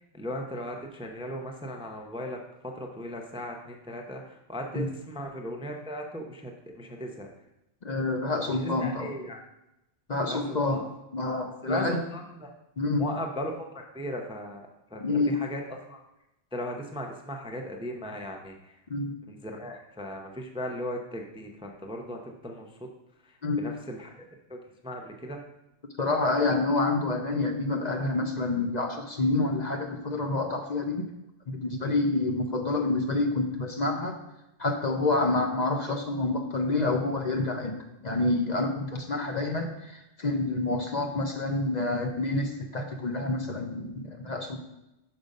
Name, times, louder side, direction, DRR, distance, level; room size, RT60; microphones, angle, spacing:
voice 1, 0.1-7.3 8.4-9.4 10.2-10.9 11.6-12.5 13.0-15.6 15.9-16.0 16.5-18.8 19.3-22.9 23.2-24.1 24.5-25.4, equal, 5° right, 2 dB, 0.6 m, -37 dB
voice 2, 7.8-9.1 10.1-10.8 11.1-12.0 12.8-13.0 15.0-15.4 18.9-19.1 23.4-23.6 26.0-31.0 31.5-34.2 34.6-37.7 38.0-44.6, left 2 dB, 45° left, 3 dB, 0.7 m, -28 dB
6.1 x 5.1 x 5.3 m, 0.91 s
omnidirectional pair, 1.2 m